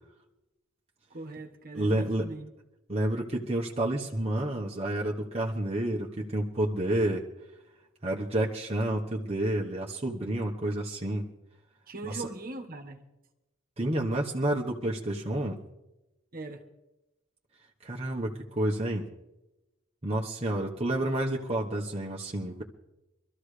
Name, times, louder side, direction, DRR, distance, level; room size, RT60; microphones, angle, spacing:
voice 1, 1.1-2.5 11.9-13.0 16.3-16.6, right 2 dB, 45° right, 1.4 m, -40 dB
voice 2, 1.7-2.2 2.9-7.2 8.0-11.3 12.1-12.3 13.8-15.6 17.8-19.0 20.0-22.6, right 1 dB, 30° right, 1.1 m, -29 dB
24.5 x 14.0 x 3.3 m
head